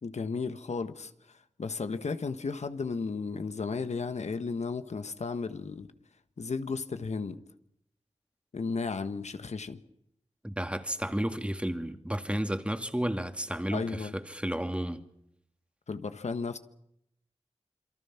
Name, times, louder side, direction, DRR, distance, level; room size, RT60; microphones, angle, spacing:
voice 1, 0.0-5.9 6.4-7.4 8.5-9.8 13.7-14.1 15.9-16.6, left 4 dB, 85° left, 1.5 m, -34 dB
voice 2, 10.4-15.0, right 1 dB, 10° right, 2.3 m, -32 dB
27.5 x 23.5 x 5.9 m
cardioid pair, 45°, 11 cm